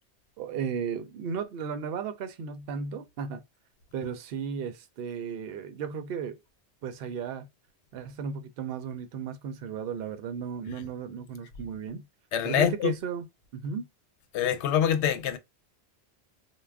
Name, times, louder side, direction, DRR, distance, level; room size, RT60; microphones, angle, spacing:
voice 1, 0.4-3.4 3.9-6.4 6.8-7.5 7.9-12.0 12.4-13.3 13.5-13.9, right 6 dB, 65° right, 0.7 m, -35 dB
voice 2, 12.3-12.9 14.3-15.4, left 9 dB, 80° left, 0.9 m, -25 dB
2.4 x 2.2 x 3.3 m
omnidirectional pair, 1.1 m